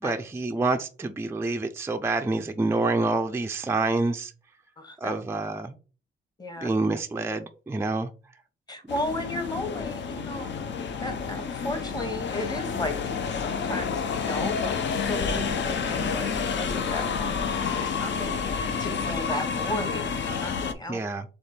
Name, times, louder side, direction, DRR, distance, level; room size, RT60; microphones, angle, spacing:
voice 1, 0.0-4.3 5.0-5.7 6.6-8.1 20.9-21.2, right 3 dB, 10° right, 5 dB, 0.4 m, -27 dB
voice 2, 4.8-5.1 6.4-6.7 8.7-13.0 13.3-21.0, left 2 dB, 20° left, 7 dB, 1.1 m, -35 dB
sound 1, 8.9-20.7, left 5 dB, 60° left, 0.6 m, -29 dB
3.4 x 3.3 x 4.3 m, 0.36 s
cardioid pair, 95°, 21 cm